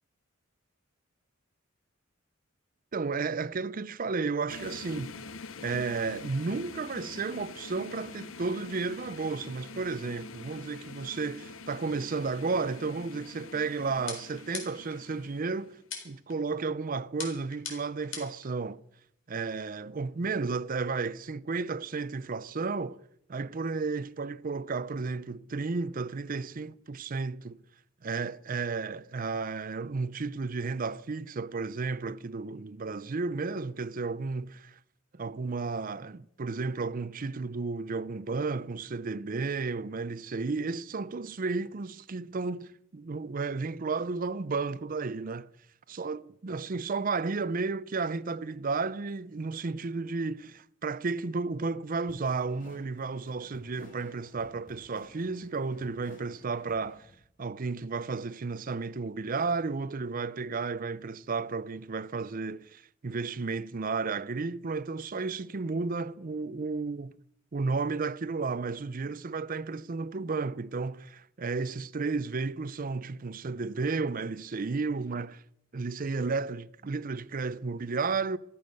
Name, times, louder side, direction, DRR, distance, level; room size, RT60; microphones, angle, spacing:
voice 1, 2.9-5.2 5.6-15.8 16.0-18.8 19.3-23.0 23.3-27.6 28.0-34.8 35.1-45.5 45.9-57.1 57.4-67.2 67.5-75.4 75.7-78.4, right 4 dB, 45° right, 0.5 m, -33 dB
sound 1, 4.5-15.8, left 3 dB, 80° left, 0.9 m, -45 dB
sound 2, 14.1-15.0 15.9-16.4 17.2-18.5, left 6 dB, 65° left, 4.2 m, -40 dB
sound 3, 52.1-57.2, left 1 dB, 45° left, 3.1 m, -54 dB
14.0 x 14.0 x 6.5 m
head